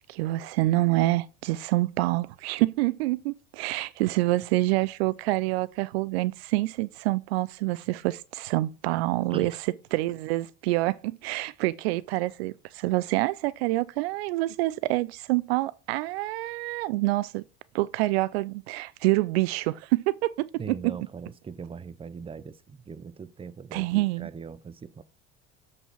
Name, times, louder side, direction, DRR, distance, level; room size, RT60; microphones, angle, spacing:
voice 1, 0.1-9.5 9.9-17.4 17.7-20.5 23.7-24.3, right 19 dB, 75° right, 0.5 m, -27 dB
voice 2, 20.6-25.0, right 6 dB, 15° right, 0.6 m, -40 dB
7.8 x 4.3 x 4.6 m
hypercardioid pair, 75°, 32 cm